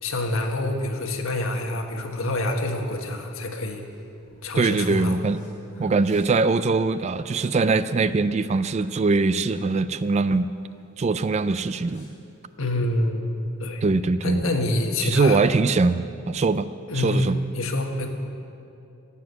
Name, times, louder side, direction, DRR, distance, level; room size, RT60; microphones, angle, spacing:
voice 1, 0.0-3.8 4.4-5.2 12.6-13.2 13.6-13.8 14.2-15.4 16.9-18.1, left 1 dB, 70° left, 3 dB, 1.5 m, -26 dB
sound 1, 1.4-12.6, equal, 35° left, 4.3 m, -52 dB
voice 2, 4.6-5.4 5.8-10.5 11.0-12.1 13.8-14.4 15.0-16.7 16.9-17.4, right 3 dB, 30° right, 14 dB, 0.3 m, -22 dB
15.5 x 7.2 x 9.5 m, 2.6 s
head